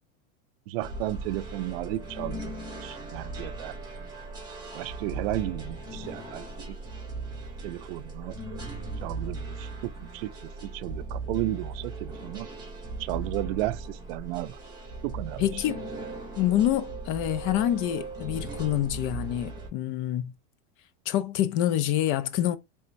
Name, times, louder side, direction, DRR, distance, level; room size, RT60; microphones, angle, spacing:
voice 1, 0.7-2.5 2.8-3.8 4.7-6.8 7.6-8.6 9.0-10.3 10.6-12.5 13.0-14.6 15.0-15.4, right 16 dB, 75° right, 0.5 m, -33 dB
sound 1, 0.8-19.7, right 3 dB, 15° right, 2.2 m, -38 dB
voice 2, 15.4-15.8 16.4-20.3 21.1-22.6, left 12 dB, 45° left, 0.6 m, -26 dB
4.2 x 3.5 x 2.5 m
supercardioid pair, 150°, 29 cm